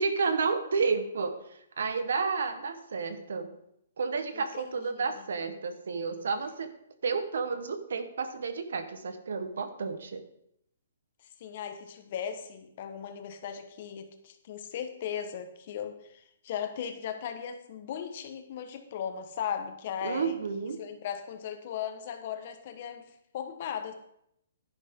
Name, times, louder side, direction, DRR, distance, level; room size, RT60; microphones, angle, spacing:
voice 1, 0.0-1.4 1.8-3.5 4.0-6.7 7.0-10.2 20.0-20.8, right 5 dB, 75° right, 9 dB, 1.3 m, -31 dB
voice 2, 4.3-5.2 11.4-20.4 20.8-23.9, left 8 dB, 40° left, 6 dB, 1.4 m, -37 dB
10.5 x 10.5 x 3.8 m, 0.75 s
hypercardioid pair, 165°, 0 cm